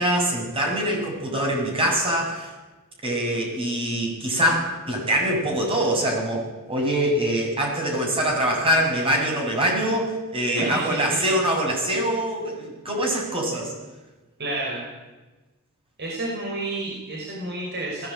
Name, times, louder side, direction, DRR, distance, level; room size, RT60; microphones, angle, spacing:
voice 1, 0.0-2.5 3.0-13.7, right 1 dB, 25° right, 0 dB, 7.0 m, -24 dB
voice 2, 10.5-11.2 14.4-14.8 16.0-18.1, right 2 dB, 50° right, -3 dB, 5.8 m, -30 dB
20.5 x 16.5 x 8.9 m, 1.2 s
head